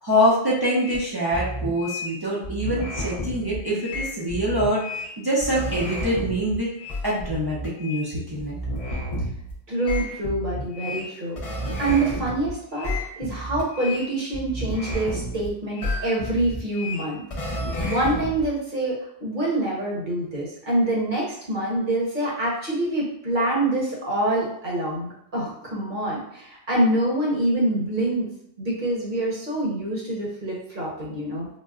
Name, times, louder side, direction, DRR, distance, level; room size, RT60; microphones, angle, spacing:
voice 1, 0.0-4.9 5.2-6.7 7.0-8.6, equal, 30° right, -6 dB, 0.5 m, -24 dB
sound 1, 0.8-1.0 1.3-2.2 2.4-5.1 5.4-8.1 8.4-9.5 9.8-12.5 12.7-15.5 15.7-18.4, left 1 dB, 45° left, 0.5 m, -31 dB
voice 2, 9.7-11.4 11.8-17.2 17.8-19.0 19.2-28.3 28.6-31.5, right 1 dB, 50° right, -4 dB, 1.0 m, -25 dB
3.9 x 2.1 x 2.3 m, 0.70 s
omnidirectional pair, 1.1 m